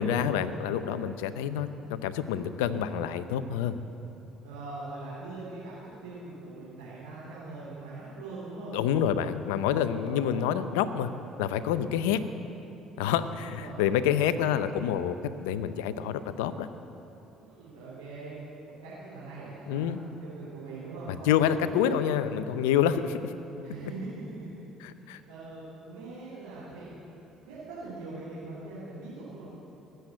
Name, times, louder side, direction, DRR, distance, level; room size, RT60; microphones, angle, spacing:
voice 1, 0.0-3.8 8.7-11.1 11.4-12.2 13.0-16.7 19.7-20.0 21.1-23.3 23.8-23.9 25.1-25.2, left 9 dB, 80° left, 12 dB, 0.6 m, -27 dB
voice 2, 4.4-8.7 9.9-10.3 12.0-12.2 13.0-14.0 17.4-18.4 18.8-21.9 23.6-24.1 24.9-29.4, right 3 dB, 85° right, -9 dB, 3.8 m, -42 dB
19.5 x 7.8 x 7.9 m, 3.0 s
hypercardioid pair, 60°, 0 cm